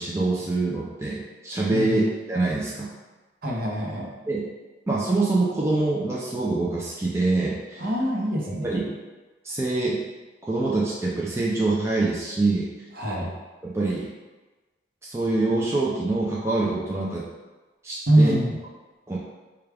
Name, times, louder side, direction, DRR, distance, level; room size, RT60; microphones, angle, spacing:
voice 1, 0.0-2.9 4.3-4.4 4.9-7.8 8.6-8.9 9.4-10.0 10.5-12.7 13.6-14.1 15.0-17.2 17.8-18.3 19.1-19.2, right 2 dB, 15° right, -5 dB, 0.4 m, -25 dB
voice 2, 1.7-2.0 3.4-4.1 7.8-8.8 13.0-13.3 18.1-18.6, right 1 dB, 50° right, -3 dB, 0.9 m, -24 dB
4.7 x 2.3 x 3.4 m, 1.2 s
head